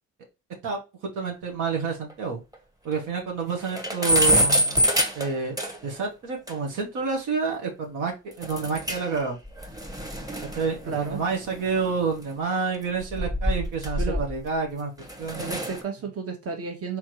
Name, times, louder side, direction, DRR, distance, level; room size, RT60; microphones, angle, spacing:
voice 1, 1.1-2.4 2.8-4.7 5.1-5.6 5.8-9.4 10.4-14.9 15.2-15.6, right 5 dB, 90° right, 1.3 m, -29 dB
sound 1, 1.7-1.8 2.1-2.2 2.5-2.6 3.0-3.1 3.4-6.0 6.5-6.6 8.4-9.2 9.5-12.1 12.9-14.5 15.0-15.8, equal, 10° right, 1.1 m, -26 dB
voice 2, 10.9-11.2 14.0-14.2 15.4-17.0, right 5 dB, 50° right, 1.3 m, -32 dB
4.4 x 3.7 x 3.0 m
cardioid pair, 90°, 30 cm